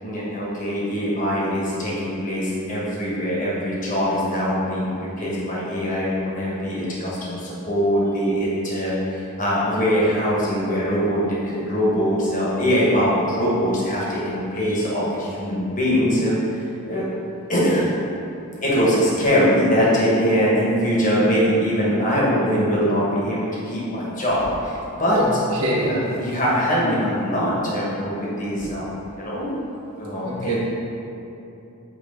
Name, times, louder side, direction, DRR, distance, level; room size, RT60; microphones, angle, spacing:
voice 1, 0.0-16.6 16.9-17.1 17.5-17.8 18.6-25.2 25.7-29.5 30.0-30.6, equal, 35° left, -6 dB, 1.4 m, -22 dB
voice 2, 25.6-26.0 30.2-30.6, right 1 dB, 90° right, -6 dB, 1.4 m, -24 dB
8.5 x 3.3 x 3.7 m, 2.8 s
head